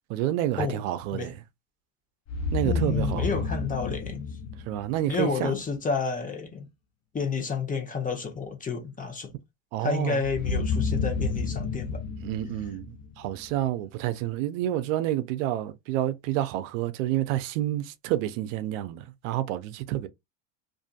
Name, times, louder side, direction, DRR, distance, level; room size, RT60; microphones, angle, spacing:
voice 1, 0.1-1.4 2.5-3.5 4.7-5.5 9.7-10.2 12.2-20.1, right 13 dB, 75° right, 0.5 m, -29 dB
sound 1, 2.3-5.3 10.2-13.5, left 4 dB, 40° left, 0.5 m, -30 dB
voice 2, 2.6-4.3 5.1-6.7 7.1-9.3 9.8-12.0, left 5 dB, 20° left, 0.9 m, -30 dB
2.6 x 2.5 x 2.4 m
supercardioid pair, 95°, 40 cm